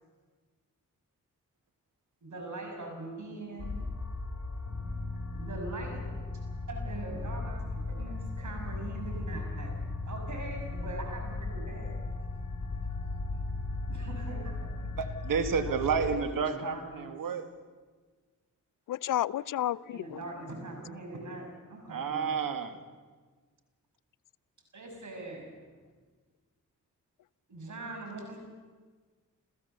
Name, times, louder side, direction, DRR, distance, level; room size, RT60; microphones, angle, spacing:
voice 1, 2.2-3.8 5.3-6.1 6.7-9.7 10.1-11.9 13.9-14.9 15.6-15.8 16.3-17.1 19.9-22.3 24.7-25.6 27.5-28.4, right 2 dB, 60° right, 2 dB, 6.1 m, -42 dB
sound 1, 3.6-16.2, left 3 dB, 50° left, 4.0 m, -36 dB
voice 2, 15.0-17.4 21.9-22.8, right 6 dB, 85° right, 8 dB, 1.9 m, -30 dB
voice 3, 18.9-20.2, left 12 dB, 75° left, 20 dB, 0.5 m, -31 dB
27.5 x 15.0 x 6.8 m, 1.4 s
cardioid pair, 60°, 33 cm